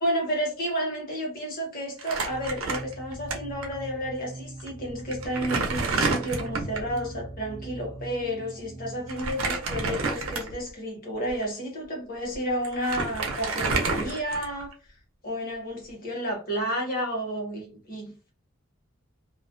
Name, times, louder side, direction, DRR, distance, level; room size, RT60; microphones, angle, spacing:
voice 1, 0.0-14.7 15.2-18.3, equal, 45° left, 1.0 m, -31 dB
Crumpling crinkling, 2.0-3.3 3.6-3.7 4.6-4.7 5.1-6.9 9.1-10.7 11.3-11.4 12.3-12.4 12.6-14.7, right 3 dB, 85° right, 0.6 m, -29 dB
sound 1, 2.3-9.5, right 1 dB, 30° right, 0.3 m, -42 dB
2.3 x 2.1 x 2.5 m
head